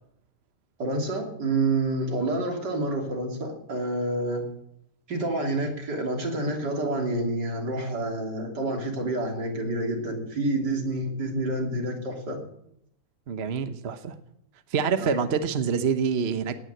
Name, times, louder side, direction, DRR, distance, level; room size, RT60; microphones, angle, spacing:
voice 1, 0.8-4.4 5.1-12.4 15.0-15.2, right 2 dB, 75° right, 2 dB, 3.7 m, -28 dB
voice 2, 13.3-14.1 14.7-16.6, right 6 dB, 45° right, 10 dB, 1.1 m, -26 dB
18.0 x 9.6 x 7.7 m, 0.76 s
omnidirectional pair, 1.8 m